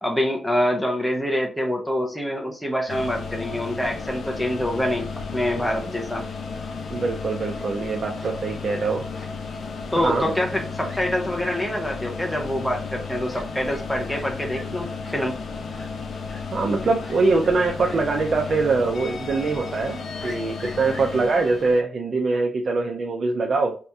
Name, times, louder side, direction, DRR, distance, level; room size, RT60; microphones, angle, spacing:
voice 1, 0.0-6.2 9.9-15.3, equal, 5° left, 0 dB, 0.6 m, -26 dB
sound 1, 2.9-21.8, left 4 dB, 70° left, 0.5 m, -33 dB
voice 2, 6.9-9.1 10.0-10.3 16.5-23.8, right 3 dB, 50° right, 1 dB, 0.4 m, -23 dB
Fowl, 7.3-7.7 8.2-8.3 9.1-9.6 10.0-10.2 10.5-10.6 10.8-11.0 11.4-11.6 12.3-12.4 13.3-13.4 13.7-13.8 14.1-14.2 14.5-14.6 15.0-15.1 15.7-15.9 16.3-16.4 17.0-17.5 17.8-18.0 18.5-18.6 18.9-19.0 20.2-21.4, left 1 dB, 40° left, 0.9 m, -44 dB
2.7 x 2.5 x 3.4 m, 0.38 s
wide cardioid pair, 125°, 0 cm